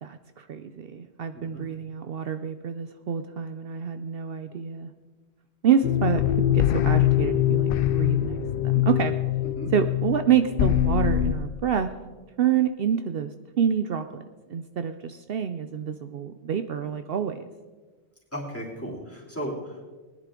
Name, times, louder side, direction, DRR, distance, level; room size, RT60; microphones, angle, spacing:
voice 1, 0.0-4.9 5.6-9.1 9.7-11.9 12.4-14.2 14.5-17.5, right 8 dB, 65° right, 9 dB, 0.8 m, -27 dB
voice 2, 1.3-1.7 9.6-9.7 18.3-19.8, equal, 10° left, -4 dB, 3.0 m, -35 dB
sound 1, 5.8-11.3, left 12 dB, 65° left, 0.7 m, -23 dB
19.5 x 11.0 x 3.8 m, 1.3 s
omnidirectional pair, 1.1 m